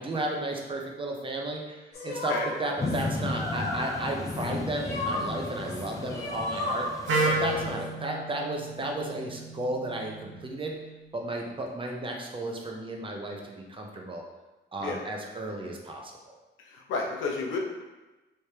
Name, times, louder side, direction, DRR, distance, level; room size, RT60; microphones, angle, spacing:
voice 1, 0.0-2.3 2.6-6.9 7.3-10.7 11.1-14.2 14.7-16.4, right 1 dB, 25° right, 1 dB, 0.6 m, -34 dB
sound 1, 1.9-7.8, left 1 dB, 55° left, 0.9 m, -35 dB
sound 2, 2.8-7.8, left 2 dB, 15° left, 0.3 m, -35 dB
Wind instrument woodwind instrument, 7.1-10.9, right 2 dB, 70° right, 0.7 m, -32 dB
voice 2, 16.6-17.6, left 3 dB, 85° left, 0 dB, 0.7 m, -31 dB
3.2 x 3.1 x 2.8 m, 1.1 s
cardioid pair, 90°, 20 cm